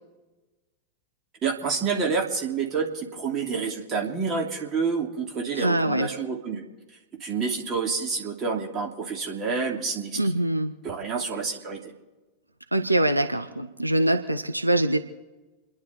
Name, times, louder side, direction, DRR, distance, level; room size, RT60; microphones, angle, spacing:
voice 1, 1.4-6.6 7.2-10.2 10.8-11.9, right 5 dB, 30° right, 0 dB, 2.9 m, -28 dB
voice 2, 5.5-6.1 10.2-10.7 12.7-15.0, right 1 dB, 85° right, 7 dB, 0.8 m, -23 dB
29.5 x 11.0 x 4.1 m, 1.2 s
figure-of-eight pair, 90°, 0 cm